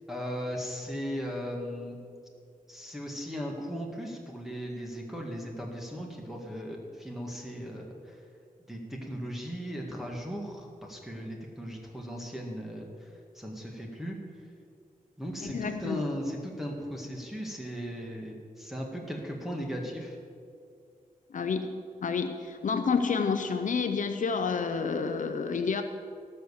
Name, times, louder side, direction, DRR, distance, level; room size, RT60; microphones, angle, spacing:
voice 1, 0.1-2.0 2.7-8.2 8.7-13.1 13.3-14.2 15.2-20.2, equal, ahead, -2 dB, 1.7 m, -37 dB
voice 2, 15.4-16.0 21.3-21.7 22.0-25.8, left 5 dB, 65° left, 7 dB, 0.6 m, -29 dB
17.5 x 6.5 x 7.1 m, 2.3 s
wide cardioid pair, 130°, 15 cm